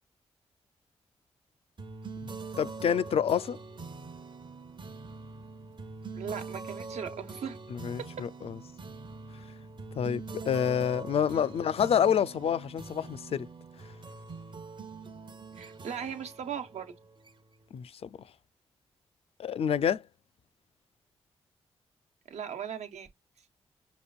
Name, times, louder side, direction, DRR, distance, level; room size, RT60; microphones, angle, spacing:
sound 1, 1.8-17.7, right 4 dB, 40° right, 0.8 m, -44 dB
voice 1, 2.6-3.6 7.7-8.5 10.0-13.5 17.7-17.9 19.4-20.0, left 8 dB, 55° left, 0.4 m, -28 dB
voice 2, 6.1-7.6 11.3-11.5 15.6-16.9 22.3-23.1, right 8 dB, 75° right, 1.1 m, -38 dB
5.3 x 2.5 x 2.2 m
supercardioid pair, 45°, 12 cm